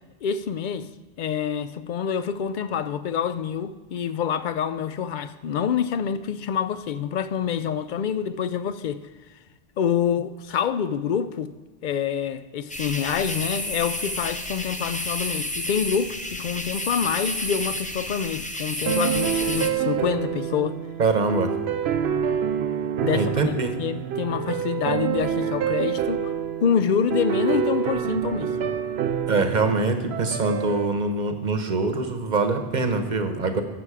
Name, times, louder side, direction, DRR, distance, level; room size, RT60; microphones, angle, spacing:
voice 1, 0.2-0.9 1.2-9.0 9.8-11.5 11.8-20.8 23.0-23.5 23.8-28.6, left 7 dB, 60° left, 0.6 m, -26 dB
sound 1, 12.7-19.7, left 1 dB, 10° left, 0.5 m, -30 dB
sound 2, 18.9-30.9, right 8 dB, 80° right, 0.8 m, -27 dB
voice 2, 21.0-21.5 23.1-23.7 29.3-33.6, right 3 dB, 45° right, 1.0 m, -24 dB
12.5 x 7.5 x 4.8 m
omnidirectional pair, 1.1 m